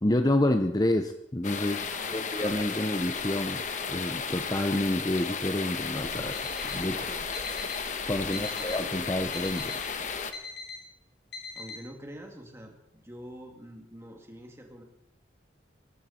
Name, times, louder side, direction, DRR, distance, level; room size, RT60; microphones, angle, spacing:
voice 1, 0.0-1.8 2.1-3.6 3.9-6.4 6.6-7.1 8.1-9.8, left 1 dB, 20° left, 7 dB, 0.7 m, -28 dB
sound 1, 1.4-10.3, left 5 dB, 40° left, 1.2 m, -34 dB
voice 2, 1.9-3.3 6.9-7.3 8.2-9.4 11.5-14.8, equal, 15° right, 2 dB, 2.5 m, -47 dB
Alarm, 6.1-6.8 7.3-7.9 8.3-8.9 9.3-9.9 10.3-10.8 11.3-11.8, left 4 dB, 65° left, 2.9 m, -41 dB
19.0 x 14.5 x 4.3 m, 0.84 s
head